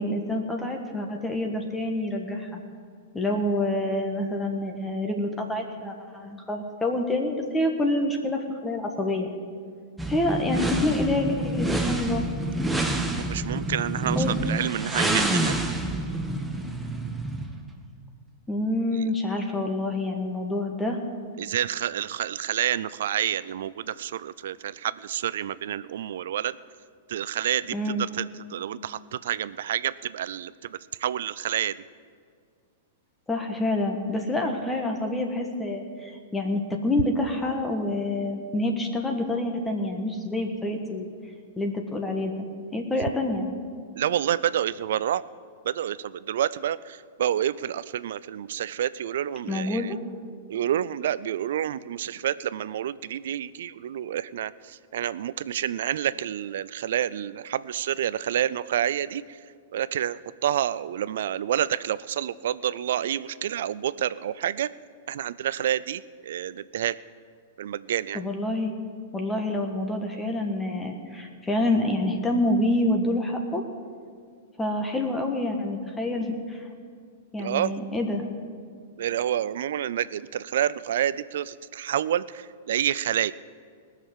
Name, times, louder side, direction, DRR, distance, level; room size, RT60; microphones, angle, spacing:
voice 1, 0.0-2.6 3.1-9.3 10.1-12.2 14.1-14.3 18.5-21.0 27.7-28.0 33.3-41.1 41.6-42.5 42.7-43.5 49.5-50.0 68.1-68.7 69.1-73.6 74.6-76.6 77.3-78.2, left 1 dB, 10° left, 3 dB, 1.5 m, -27 dB
sound 1, 10.0-17.6, right 1 dB, 5° right, 1.2 m, -27 dB
voice 2, 13.3-15.5 18.9-19.1 21.4-26.6 27.1-31.8 44.0-45.2 45.6-49.9 50.5-59.4 59.7-64.7 65.1-67.0 67.6-68.2 77.4-77.8 79.0-83.3, right 10 dB, 65° right, 18 dB, 0.4 m, -28 dB
19.5 x 6.6 x 7.3 m, 2.1 s
hypercardioid pair, 105°, 0 cm